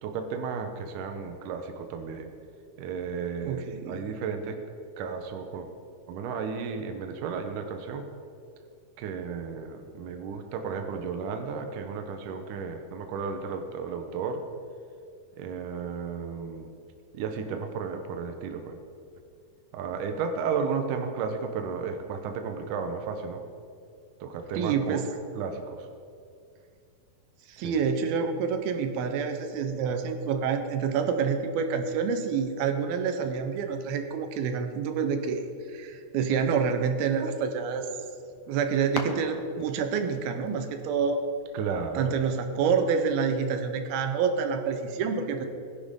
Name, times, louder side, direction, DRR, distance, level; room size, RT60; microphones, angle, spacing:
voice 1, 0.0-2.3 2.8-4.6 5.0-5.7 6.1-8.1 9.0-14.4 15.4-16.7 17.1-18.7 19.7-23.4 24.2-25.0 25.4-25.9 27.6-27.8 41.5-42.1, right 5 dB, 70° right, 6 dB, 2.3 m, -33 dB
voice 2, 3.4-4.0 24.6-25.1 27.5-35.4 35.7-37.9 38.5-41.2 42.0-45.5, right 6 dB, 90° right, 7 dB, 2.8 m, -27 dB
sound 1, 38.0-43.1, left 6 dB, 75° left, 1.5 m, -44 dB
19.5 x 10.5 x 3.7 m, 2.3 s
omnidirectional pair, 4.2 m